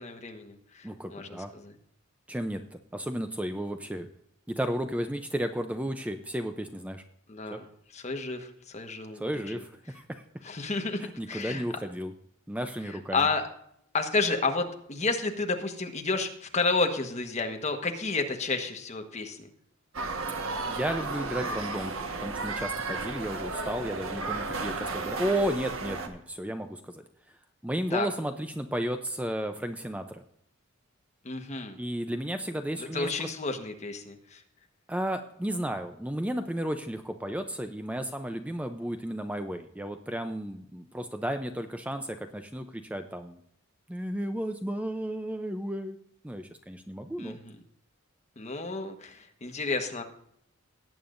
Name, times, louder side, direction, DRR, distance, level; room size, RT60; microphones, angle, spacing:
voice 1, 0.0-1.7 7.3-7.6 7.9-9.6 10.4-11.0 11.3-11.6 13.1-13.4 13.9-19.4 27.9-28.1 31.2-31.8 32.8-34.4 47.2-47.6 48.4-50.0, left 3 dB, 35° left, 5 dB, 1.3 m, -31 dB
voice 2, 0.8-1.5 2.3-2.6 2.9-4.1 4.5-7.0 7.5-7.6 9.1-10.2 11.0-12.1 12.5-13.3 20.7-27.0 27.6-30.2 31.8-33.3 34.9-43.4 43.9-46.0 46.2-47.4, equal, 5° right, 7 dB, 0.5 m, -33 dB
sound 1, 19.9-26.1, right 3 dB, 85° right, 1.4 m, -33 dB
18.0 x 8.8 x 2.6 m, 0.70 s
head